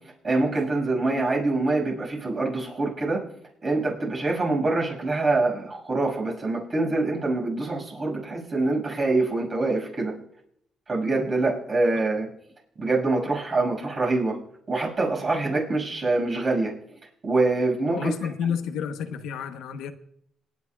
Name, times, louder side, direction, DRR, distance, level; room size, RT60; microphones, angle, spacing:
voice 1, 0.2-3.2 3.6-10.1 10.9-12.3 12.8-14.4 14.7-16.7 17.2-18.1, right 2 dB, 40° right, 6.1 m, -25 dB
voice 2, 17.9-19.9, left 7 dB, 85° left, 1.0 m, -30 dB
27.0 x 10.5 x 2.4 m
cardioid pair, 90°, 0 cm